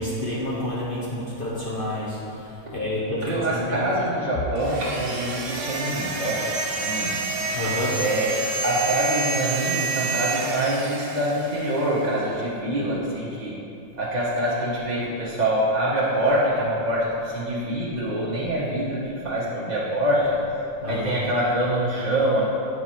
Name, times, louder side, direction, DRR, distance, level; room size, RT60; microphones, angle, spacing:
voice 1, 0.0-3.9 7.5-8.0 20.8-21.2, left 1 dB, 45° left, -6 dB, 1.0 m, -29 dB
voice 2, 3.2-7.2 8.0-13.6 14.0-20.4 20.8-22.4, right 1 dB, 35° right, -7 dB, 0.9 m, -25 dB
sound 1, 4.6-11.9, right 3 dB, 65° right, 1.1 m, -29 dB
8.1 x 4.7 x 4.4 m, 2.8 s
omnidirectional pair, 1.4 m